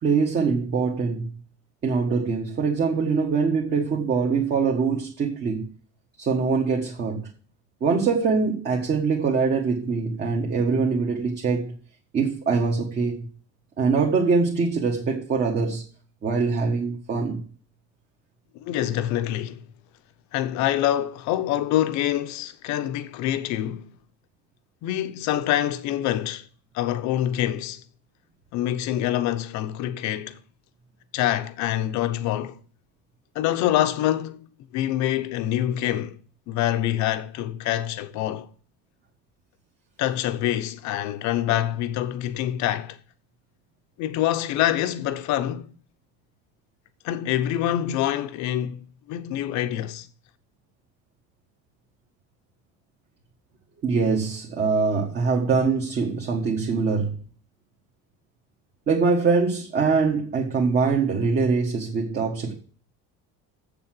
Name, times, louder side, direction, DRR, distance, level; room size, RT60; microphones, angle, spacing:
voice 1, 0.0-1.3 1.8-5.7 6.2-7.3 7.8-11.7 12.1-13.3 13.8-15.8 16.2-17.4 53.8-57.2 58.9-62.5, right 4 dB, 30° right, 1.5 m, -23 dB
voice 2, 18.6-19.7 20.3-23.9 24.8-26.5 26.7-27.8 28.5-30.4 31.1-32.6 33.3-34.4 34.7-36.2 36.5-38.5 40.0-43.0 44.0-45.7 47.0-50.1, left 12 dB, 55° left, 0.9 m, -25 dB
7.7 x 6.9 x 7.6 m
cardioid pair, 170°, 35 cm